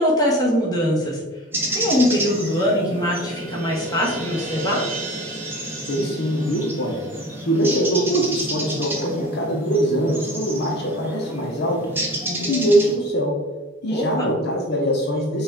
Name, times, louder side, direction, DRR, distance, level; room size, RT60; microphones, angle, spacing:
voice 1, 0.0-1.4 1.7-4.8 13.9-14.3, equal, 20° left, -4 dB, 1.1 m, -22 dB
sound 1, 1.5-13.0, right 1 dB, 10° right, 0.8 m, -31 dB
sound 2, 1.9-8.5, right 2 dB, 35° right, 1.1 m, -35 dB
voice 2, 5.9-7.0 7.4-11.8 12.3-13.4 13.8-15.4, right 1 dB, 55° left, -1 dB, 0.8 m, -22 dB
5.8 x 2.4 x 3.5 m, 1.2 s
head